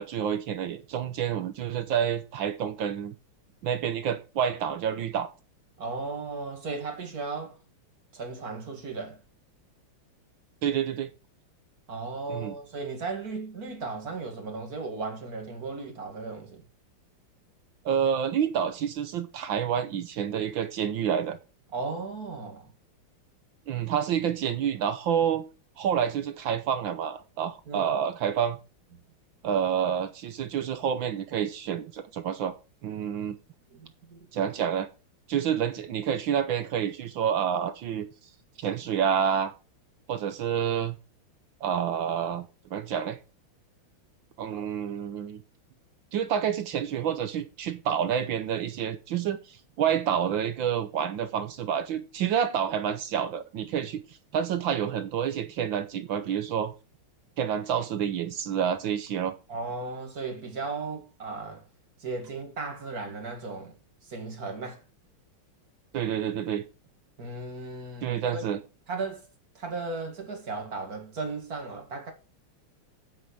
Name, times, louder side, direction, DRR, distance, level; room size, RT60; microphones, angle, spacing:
voice 1, 0.0-3.1 3.6-5.3 10.6-11.1 12.3-12.5 17.8-21.4 23.7-25.5 25.8-28.6 29.4-32.5 32.8-33.4 34.3-34.9 35.3-38.1 38.6-39.5 40.1-41.0 41.6-43.2 44.4-45.4 46.1-54.0 54.3-56.7 57.4-59.4 65.9-66.6 68.0-68.6, right 8 dB, 70° right, 1.5 m, -28 dB
voice 2, 5.8-7.6 8.1-9.2 11.9-16.6 21.7-22.7 27.7-27.9 33.7-34.3 59.5-61.7 62.0-63.8 64.0-64.8 67.2-68.5 68.9-69.3 69.5-72.1, right 3 dB, 45° right, 2.6 m, -36 dB
9.4 x 7.9 x 4.8 m
omnidirectional pair, 2.4 m